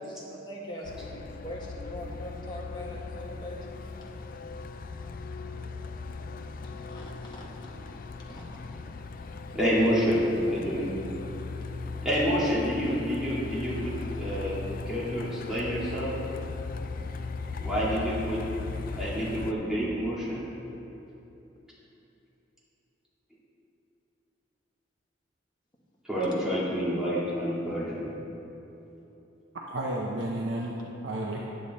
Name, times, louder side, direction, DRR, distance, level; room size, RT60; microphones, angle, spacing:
voice 1, 0.0-3.7 4.3-4.4 6.6-7.4 8.3-8.4, equal, 25° left, -3 dB, 1.5 m, -41 dB
Truck, 0.9-19.5, left 4 dB, 45° left, 0.4 m, -38 dB
voice 2, 9.5-10.9 12.0-16.1 17.6-18.4 18.8-20.4 26.0-28.0, equal, 5° right, -8 dB, 2.1 m, -28 dB
voice 3, 29.5-31.5, right 1 dB, 65° right, -2 dB, 0.7 m, -32 dB
10.0 x 8.4 x 4.2 m, 3.0 s
head